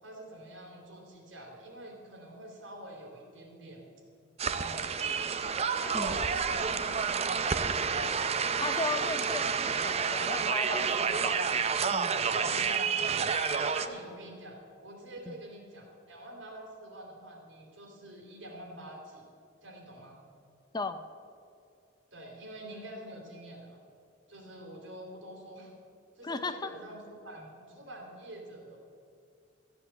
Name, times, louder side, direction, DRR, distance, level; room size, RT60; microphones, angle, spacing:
voice 1, 0.0-3.9 4.6-5.4 5.8-8.0 11.0-11.3 12.4-19.2 19.6-20.2 22.1-23.8 24.3-25.7 26.2-28.8, right 1 dB, 75° right, 1 dB, 3.0 m, -46 dB
sound 1, 4.4-13.9, right 6 dB, 30° right, 0.5 m, -29 dB
voice 2, 8.6-11.4 11.9-12.2 15.3-15.4 20.7-21.0 26.2-26.7, left 3 dB, 20° left, 10 dB, 0.5 m, -36 dB
14.5 x 8.0 x 7.6 m, 2.5 s
head